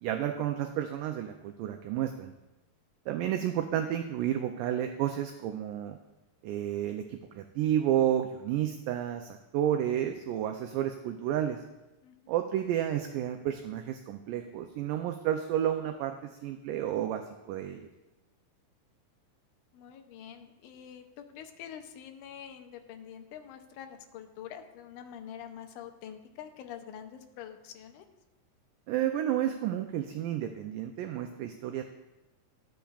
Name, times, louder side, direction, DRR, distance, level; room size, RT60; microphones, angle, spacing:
voice 1, 0.0-2.3 3.1-6.0 6.4-11.6 12.3-16.2 16.4-17.9 28.9-31.8, right 11 dB, 80° right, 6 dB, 1.9 m, -31 dB
voice 2, 12.0-12.3 19.7-28.1, left 9 dB, 80° left, 5 dB, 1.9 m, -46 dB
13.5 x 8.5 x 2.4 m, 1.0 s
omnidirectional pair, 4.1 m